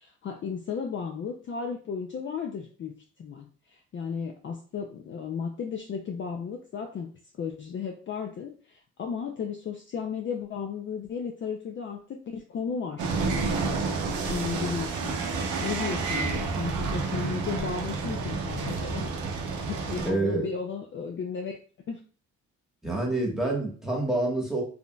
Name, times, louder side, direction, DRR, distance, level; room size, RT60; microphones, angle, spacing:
voice 1, 0.0-7.1 7.4-13.1 13.9-15.2 15.6-19.1 19.6-21.6 21.9-22.0, left 6 dB, 40° left, 3 dB, 0.4 m, -34 dB
sound 1, 13.0-20.1, right 4 dB, 75° right, 0.7 m, -30 dB
voice 2, 20.0-20.5 22.8-24.6, right 2 dB, ahead, -3 dB, 1.2 m, -27 dB
3.5 x 2.5 x 2.2 m, 0.41 s
cardioid pair, 90°, 30 cm